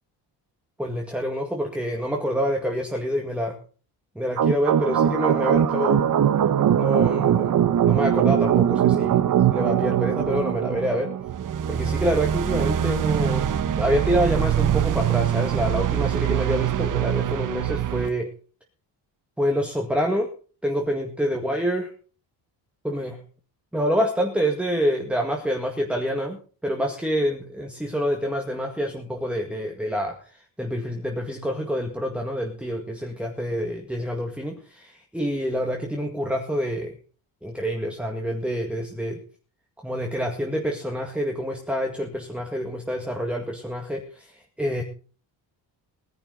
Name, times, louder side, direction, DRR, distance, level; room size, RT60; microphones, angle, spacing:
voice 1, 0.8-3.6 4.2-6.0 6.8-7.6 7.8-9.2 9.5-11.1 11.7-18.3 19.4-20.3 20.6-21.8 22.8-23.2 23.7-37.0 37.4-39.2 39.8-44.8, equal, 5° right, 1 dB, 2.0 m, -27 dB
sound 1, 4.4-18.1, right 9 dB, 45° right, 1.2 m, -22 dB
20.5 x 10.5 x 4.0 m, 0.38 s
cardioid pair, 135°, 42 cm